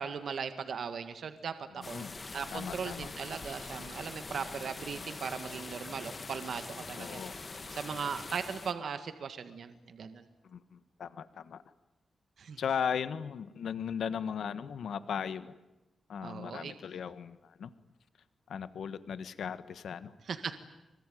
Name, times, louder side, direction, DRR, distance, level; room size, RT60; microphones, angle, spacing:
voice 1, 0.0-2.0 2.3-10.3 12.4-12.6 16.2-16.7 20.3-20.5, right 6 dB, 60° right, 9 dB, 1.8 m, -38 dB
voice 2, 1.8-2.1 2.5-3.1 7.0-7.3 10.4-11.6 12.6-15.5 16.1-17.7 18.5-20.1, left 7 dB, 80° left, 13 dB, 1.4 m, -37 dB
sound 1, 1.8-8.7, left 3 dB, 30° left, 1.9 m, -44 dB
25.5 x 24.5 x 9.3 m, 1.0 s
wide cardioid pair, 160°, 0 cm